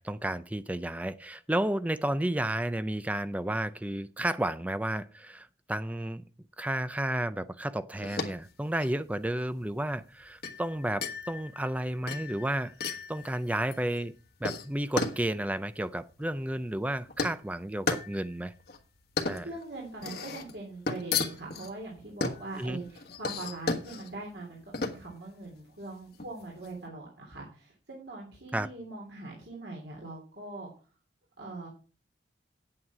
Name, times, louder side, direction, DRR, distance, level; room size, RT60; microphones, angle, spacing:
voice 1, 0.0-6.2 6.6-14.1 14.4-18.5 19.2-19.5 22.6-22.8 28.5-28.7, right 1 dB, 10° right, 0.4 m, -32 dB
sound 1, 8.0-26.8, left 4 dB, 60° left, 1.4 m, -36 dB
voice 2, 19.4-30.7 31.4-31.7, right 2 dB, 70° right, 3.0 m, -42 dB
9.3 x 8.7 x 4.8 m
head